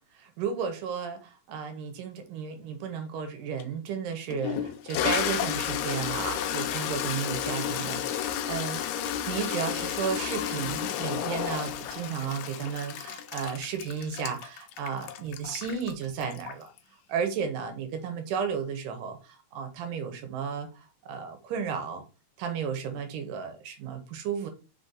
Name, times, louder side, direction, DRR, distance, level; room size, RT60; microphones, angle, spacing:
voice 1, 0.1-8.8 9.3-16.7 17.1-22.0 22.4-24.5, right 7 dB, 85° right, 2.4 m, -33 dB
Toilet flush, 3.6-3.7 4.3-16.8, left 10 dB, 85° left, 1.6 m, -32 dB
5.2 x 2.7 x 3.8 m
omnidirectional pair, 3.7 m